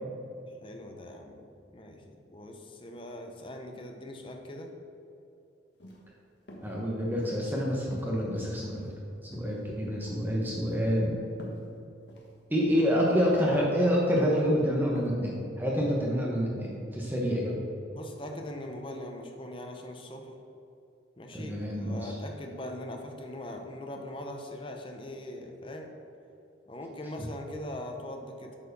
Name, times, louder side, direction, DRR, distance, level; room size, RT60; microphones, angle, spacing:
voice 1, 0.6-1.5 1.7-4.7 17.9-20.3 21.2-25.9 26.7-28.6, left 1 dB, 25° left, 3 dB, 0.7 m, -41 dB
sound 1, 5.7-6.0 6.5-6.7 7.2-7.5 7.9-8.4 8.6-8.9 9.3-9.8 10.0-10.3 10.7-10.9 11.4-11.6 12.1-12.3 12.8-13.0 13.4-13.7 14.2-14.4 15.0-15.1, left 1 dB, 60° left, 1.4 m, -47 dB
voice 2, 6.6-8.9 9.2-11.1 12.5-17.6 21.3-22.1, equal, 10° right, -3 dB, 1.0 m, -27 dB
8.7 x 4.7 x 6.6 m, 2.8 s
head